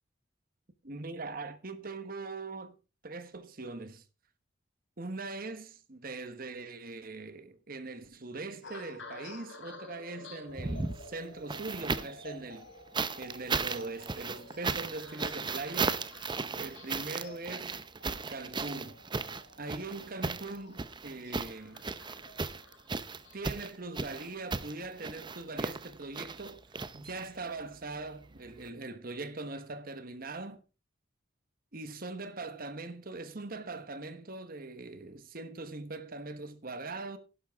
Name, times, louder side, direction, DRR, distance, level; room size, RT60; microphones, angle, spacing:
voice 1, 0.8-2.8 3.0-4.0 5.0-12.7 13.2-16.0 16.5-17.8 18.3-19.0 19.6-21.8 23.3-26.6 26.9-30.6 31.7-37.2, right 3 dB, 50° right, 1.3 m, -41 dB
sound 1, 8.6-25.1 25.7-26.0, left 2 dB, 70° left, 3.8 m, -52 dB
sound 2, 10.5-12.2 12.9-27.5 28.6-28.7, right 4 dB, 25° right, 0.7 m, -36 dB
12.0 x 11.0 x 3.6 m
head